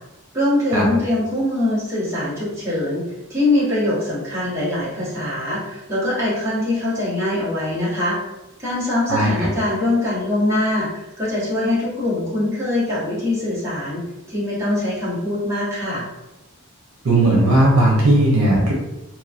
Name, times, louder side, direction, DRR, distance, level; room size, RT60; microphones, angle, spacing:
voice 1, 0.3-8.2 8.6-16.0, left 1 dB, 15° right, -9 dB, 1.1 m, -23 dB
voice 2, 9.1-9.5 17.0-18.7, right 1 dB, 75° right, -3 dB, 0.8 m, -16 dB
2.8 x 2.2 x 2.4 m, 0.95 s
head